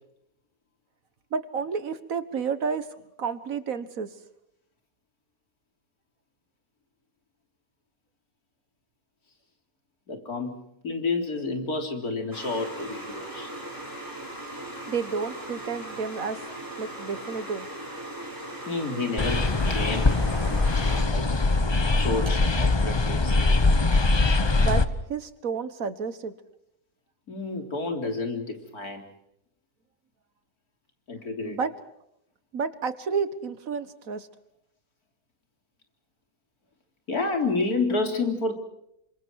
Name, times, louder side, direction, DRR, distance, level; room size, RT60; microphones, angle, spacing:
voice 1, 1.3-2.9 3.2-4.1 14.9-16.4 16.8-17.7 24.6-26.3 31.4-31.7 32.5-34.3, right 5 dB, 65° right, 13 dB, 1.7 m, -30 dB
voice 2, 10.1-13.5 18.7-20.6 21.1-21.3 21.8-23.4 27.3-29.1 31.1-31.6 37.1-38.6, left 3 dB, 85° left, 4 dB, 4.0 m, -30 dB
sound 1, 12.3-21.0, right 1 dB, 15° right, 5.3 m, -38 dB
sound 2, 19.2-24.9, left 3 dB, 20° left, 0.8 m, -22 dB
29.0 x 25.5 x 4.7 m, 0.79 s
omnidirectional pair, 1.5 m